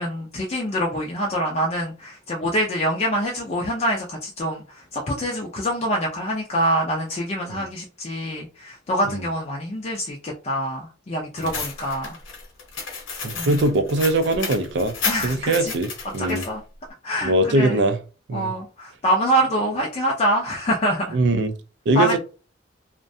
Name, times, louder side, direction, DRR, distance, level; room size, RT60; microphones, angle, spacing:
voice 1, 0.0-4.6 4.9-12.2 13.4-13.6 15.0-15.7 16.2-16.6 17.0-17.8 18.3-21.2 21.9-22.2, equal, 35° left, 0.4 m, -25 dB
sound 1, 11.4-16.5, left 5 dB, 80° left, 0.8 m, -32 dB
voice 2, 13.2-14.9 15.2-16.5 17.2-18.0 18.3-18.5 21.1-21.6 21.9-22.2, right 2 dB, 65° right, 0.4 m, -21 dB
2.4 x 2.1 x 2.6 m
head